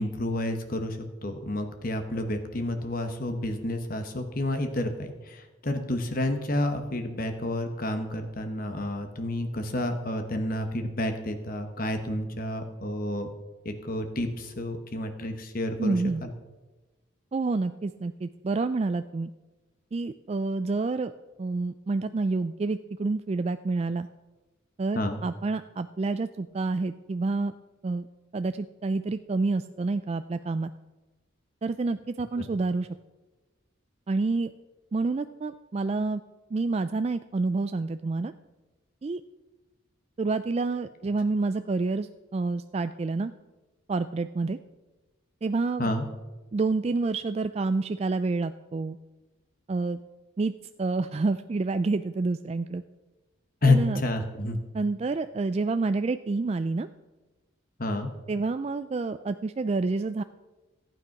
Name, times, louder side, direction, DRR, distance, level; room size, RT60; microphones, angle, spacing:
voice 1, 0.0-13.3 13.6-16.3 24.9-25.2 32.4-32.5 45.8-46.0 53.6-54.6 57.8-58.1, left 1 dB, 45° left, 6 dB, 1.1 m, -29 dB
voice 2, 15.8-16.2 17.3-19.3 19.9-21.1 21.4-24.1 24.8-27.5 27.8-28.0 28.3-30.7 31.6-32.9 34.1-34.5 34.9-36.2 36.5-38.3 39.0-39.2 40.2-43.3 43.9-44.6 45.4-45.9 46.5-49.0 49.7-50.0 50.4-50.5 50.8-52.8 53.6-54.0 54.7-56.9 58.3-60.2, right 3 dB, 30° right, 10 dB, 0.3 m, -28 dB
14.5 x 9.2 x 5.9 m, 1.2 s
head